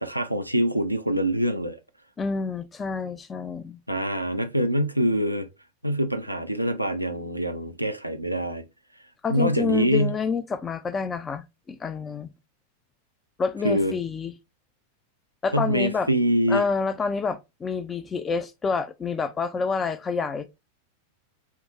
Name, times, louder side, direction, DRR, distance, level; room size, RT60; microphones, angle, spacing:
voice 1, 0.0-1.8 3.9-5.5 5.8-8.7 9.3-10.1 13.6-13.9 15.5-16.6, equal, 90° right, 0.4 m, -24 dB
voice 2, 2.2-3.8 9.2-12.3 13.4-14.3 15.4-16.1 16.5-20.5, left 5 dB, 20° left, 0.4 m, -28 dB
5.6 x 2.0 x 2.8 m
figure-of-eight pair, 90°, 0 cm